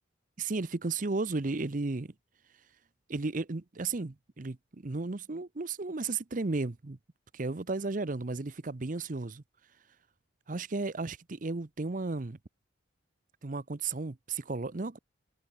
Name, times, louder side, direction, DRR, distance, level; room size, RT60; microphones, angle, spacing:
voice 1, 0.4-2.1 3.1-7.0 7.3-9.4 10.5-12.4 13.4-15.0, right 3 dB, 45° right, 0.7 m, -34 dB
open air
head